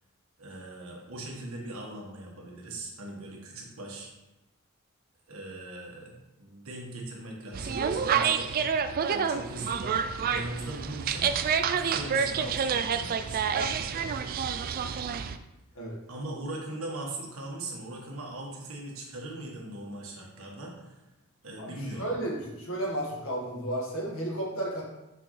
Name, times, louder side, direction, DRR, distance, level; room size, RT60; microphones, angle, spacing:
voice 1, 0.4-4.1 5.3-8.6 9.1-11.3 11.6-14.0 16.1-21.0 21.4-22.0, right 2 dB, 80° right, -1 dB, 1.5 m, -40 dB
sound 1, 7.5-15.4, right 7 dB, 45° right, 0.3 m, -28 dB
voice 2, 21.6-24.8, right 1 dB, 75° left, -2 dB, 1.7 m, -33 dB
6.1 x 5.7 x 3.2 m, 0.98 s
head